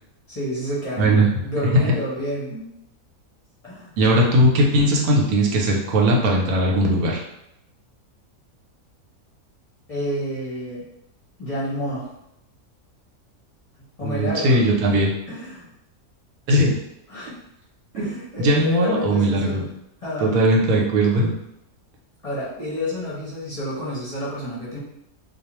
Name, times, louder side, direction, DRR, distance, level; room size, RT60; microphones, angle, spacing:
voice 1, 0.3-1.1 1.4-2.7 3.6-3.9 9.9-10.8 11.4-12.1 14.0-14.7 14.9-15.0 15.3-15.7 17.1-17.3 17.9-19.6 20.0-20.4 22.2-24.8, left 1 dB, 35° left, -8 dB, 0.7 m, -29 dB
voice 2, 1.0-1.3 4.0-7.2 14.0-15.1 16.5-16.7 17.9-18.1 18.4-19.6 20.2-21.3, right 1 dB, 90° right, -1 dB, 1.1 m, -19 dB
2.4 x 2.3 x 2.9 m, 0.82 s
omnidirectional pair, 1.5 m